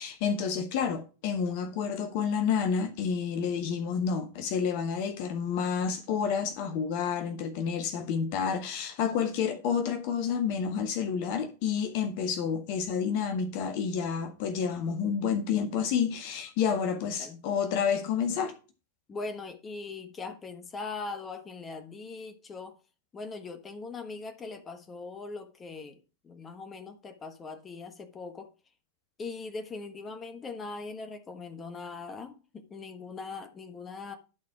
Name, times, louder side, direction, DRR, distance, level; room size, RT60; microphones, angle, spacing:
voice 1, 0.0-18.5, left 7 dB, 45° left, 1.0 m, -29 dB
voice 2, 17.0-17.4 19.1-22.8 23.1-28.5 29.2-34.2, left 4 dB, 20° left, 1.3 m, -41 dB
11.5 x 4.2 x 5.9 m
figure-of-eight pair, 90°, 0 cm